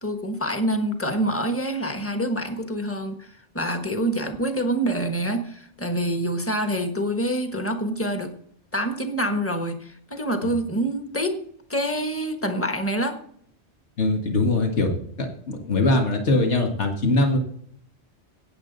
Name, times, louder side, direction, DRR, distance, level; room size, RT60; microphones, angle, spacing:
voice 1, 0.0-3.3 3.5-8.4 8.7-11.4 11.7-13.2, right 1 dB, 10° left, 6 dB, 1.3 m, -26 dB
voice 2, 14.0-14.9 15.2-17.4, left 2 dB, 80° left, 3 dB, 2.0 m, -22 dB
17.5 x 7.3 x 4.0 m, 0.64 s
omnidirectional pair, 1.2 m